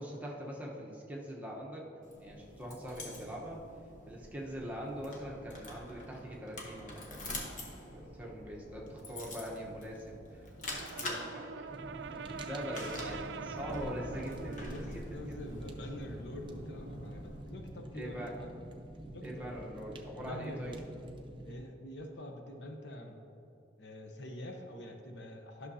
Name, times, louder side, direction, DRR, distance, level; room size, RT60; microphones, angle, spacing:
voice 1, 0.0-1.9 2.2-3.6 4.1-7.2 7.9-10.4 10.7-11.7 12.1-15.4 17.9-18.3 19.2-20.8, equal, 10° right, -3 dB, 1.0 m, -43 dB
sound 1, 2.0-17.4, left 1 dB, 45° left, 1.1 m, -46 dB
Brass instrument, 10.6-14.8, right 5 dB, 70° right, 0.3 m, -44 dB
Fire, 11.7-21.5, right 1 dB, 25° right, 0.6 m, -48 dB
voice 2, 14.6-18.5 19.1-19.5 20.2-20.8 21.4-23.2 23.8-25.7, left 1 dB, 75° left, 3 dB, 0.8 m, -45 dB
11.5 x 6.2 x 2.8 m, 2.7 s
head